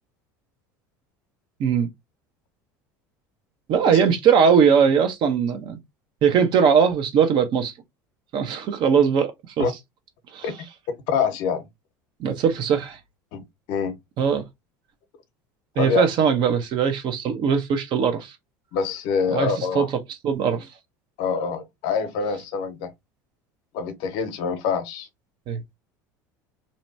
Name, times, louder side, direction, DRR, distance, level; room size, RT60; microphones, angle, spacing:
voice 1, 3.7-5.8 6.2-7.7 8.3-9.7 10.3-10.5 12.2-13.0 14.2-14.5 15.8-18.3 19.3-19.9 20.2-20.7 25.5-25.6, right 7 dB, 55° right, 0.8 m, -20 dB
voice 2, 11.1-11.6 13.3-14.0 15.8-16.1 18.7-19.9 21.2-22.9 23.7-25.1, left 6 dB, 65° left, 0.8 m, -25 dB
2.7 x 2.2 x 2.6 m
hypercardioid pair, 85°, 10 cm